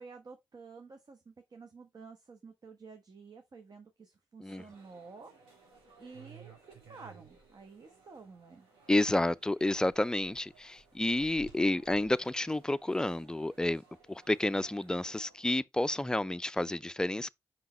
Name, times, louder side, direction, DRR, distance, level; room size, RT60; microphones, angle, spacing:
voice 1, 0.0-5.3 5.6-8.7, right 4 dB, 45° right, 1.2 m, -51 dB
sound 1, 4.5-15.5, right 5 dB, 80° right, 3.3 m, -58 dB
voice 2, 8.9-13.8 14.1-17.3, left 1 dB, 10° left, 0.4 m, -30 dB
5.7 x 5.6 x 3.1 m
hypercardioid pair, 40°, 9 cm